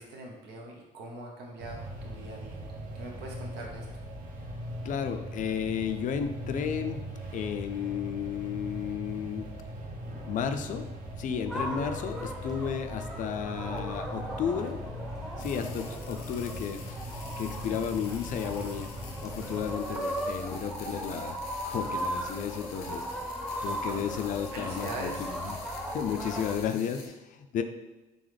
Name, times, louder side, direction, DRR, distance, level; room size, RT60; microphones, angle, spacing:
voice 1, 0.0-2.6 2.9-3.9 15.4-15.7 23.6-24.0 24.5-25.3, right 2 dB, 80° right, 0 dB, 1.0 m, -42 dB
sound 1, 1.6-19.8, equal, 50° right, 0.8 m, -40 dB
voice 2, 4.8-7.0 7.3-9.5 10.3-10.9 11.2-14.8 15.4-18.9 19.2-21.4 21.6-23.3 23.6-25.5 25.9-27.6, left 8 dB, 50° left, 8 dB, 0.4 m, -33 dB
sound 2, 11.5-26.6, equal, 5° right, 0.7 m, -37 dB
sound 3, 15.4-27.1, left 5 dB, 85° left, 0.7 m, -48 dB
3.9 x 3.4 x 3.2 m, 1.1 s
cardioid pair, 110°, 17 cm